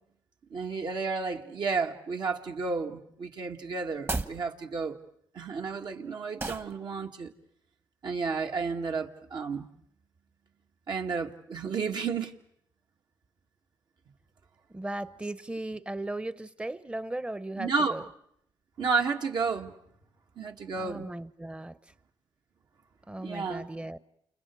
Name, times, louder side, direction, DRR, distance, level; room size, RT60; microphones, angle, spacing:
voice 1, 0.5-5.0 5.3-7.3 8.0-9.7 10.9-12.4 17.5-18.0 18.8-19.7 20.4-21.1 23.2-23.7, right 4 dB, 60° right, 2.2 m, -31 dB
sound 1, 3.9-4.4 6.4-6.7, right 3 dB, 30° right, 1.5 m, -32 dB
voice 2, 14.7-18.1 20.7-21.8 23.1-24.0, right 1 dB, 15° right, 1.0 m, -37 dB
29.5 x 29.0 x 4.8 m
cardioid pair, 75°, 9 cm